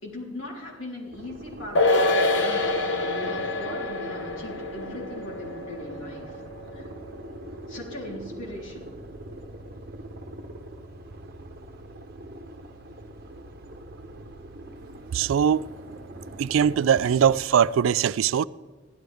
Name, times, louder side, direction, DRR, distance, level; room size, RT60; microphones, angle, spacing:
voice 1, 0.0-6.4 6.7-6.9 7.7-8.9, left 2 dB, 85° left, 3.6 m, -39 dB
sound 1, 1.1-17.4, right 1 dB, 50° right, 1.0 m, -42 dB
sound 2, 1.7-8.4 8.7-8.8, left 2 dB, 65° left, 1.2 m, -27 dB
voice 2, 15.1-15.6 16.4-18.4, right 8 dB, 90° right, 0.3 m, -21 dB
16.0 x 11.5 x 3.5 m
head